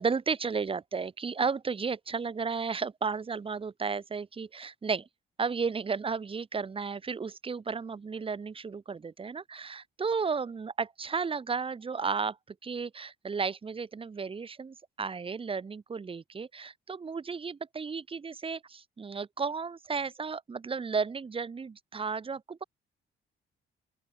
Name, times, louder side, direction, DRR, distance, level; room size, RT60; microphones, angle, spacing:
voice 1, 0.0-5.1 5.4-12.4 12.6-22.6, right 5 dB, 25° right, 0.8 m, -33 dB
open air
cardioid pair, 90°, 20 cm